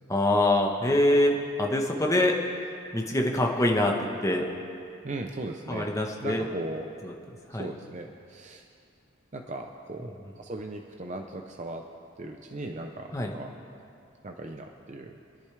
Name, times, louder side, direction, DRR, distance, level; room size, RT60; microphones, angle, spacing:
voice 1, 0.1-2.3 2.9-3.9 4.2-4.5 5.7-6.5 7.0-7.1 7.5-7.7 13.1-13.3, left 1 dB, 15° left, 1 dB, 1.2 m, -24 dB
voice 2, 5.0-5.9 6.2-6.9 7.6-8.6 9.3-11.8 12.2-13.5 14.2-15.1, right 2 dB, 40° right, 3 dB, 0.7 m, -38 dB
26.0 x 10.5 x 3.4 m, 2.4 s
head